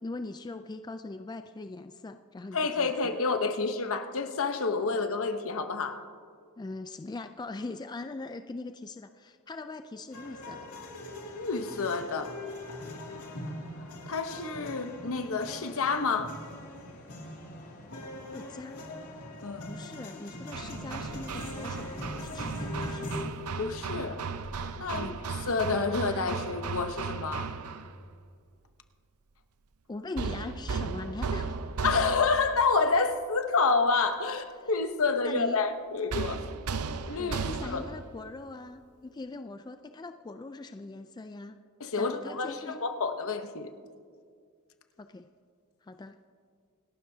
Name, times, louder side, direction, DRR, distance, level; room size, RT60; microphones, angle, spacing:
voice 1, 0.0-3.2 6.6-10.7 18.3-18.8 19.7-23.1 24.9-25.2 29.9-31.6 34.6-34.7 35.2-35.6 37.2-41.6 41.9-42.8 45.0-45.2 45.8-46.2, left 2 dB, 20° left, 9 dB, 0.3 m, -41 dB
voice 2, 2.5-6.0 11.4-12.4 14.1-16.4 19.4-19.7 23.6-24.2 24.7-25.1 25.5-27.5 31.8-36.4 37.1-37.8 41.8-43.7, left 4 dB, 65° left, 7 dB, 0.9 m, -29 dB
sound 1, 10.1-23.2, left 1 dB, 85° left, 2.5 m, -41 dB
Hammer, 20.5-27.9 30.2-32.6 36.1-38.0, right 5 dB, 80° right, 0.6 m, -36 dB
sound 2, 20.6-23.2, right 1 dB, 30° right, 2.1 m, -51 dB
26.5 x 12.0 x 2.8 m, 2.1 s
head